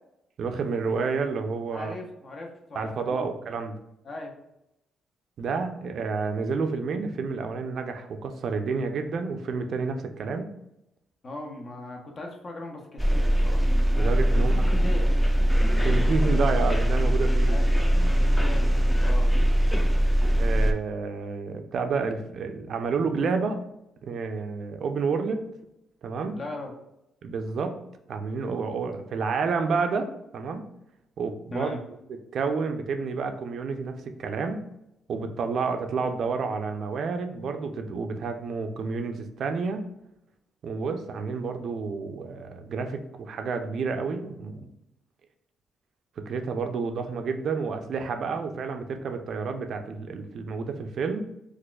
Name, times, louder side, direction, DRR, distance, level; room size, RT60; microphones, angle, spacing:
voice 1, 0.4-1.9 2.7-3.8 5.4-10.5 13.9-14.7 15.8-17.6 20.4-23.6 24.0-25.4 26.0-26.4 27.2-27.8 28.1-30.6 31.2-31.7 32.3-33.9 34.2-34.6 35.1-39.8 40.6-44.7 46.3-51.3, right 4 dB, 60° right, 6 dB, 0.4 m, -30 dB
voice 2, 1.7-3.3 4.0-4.4 11.2-13.6 14.3-15.1 17.5-17.7 18.1-19.3 26.3-26.7 31.5-31.8, left 1 dB, 45° left, 2 dB, 0.7 m, -38 dB
sound 1, 13.0-20.7, equal, 5° left, 0.4 m, -21 dB
4.0 x 2.4 x 2.3 m, 0.86 s
cardioid pair, 90°, 0 cm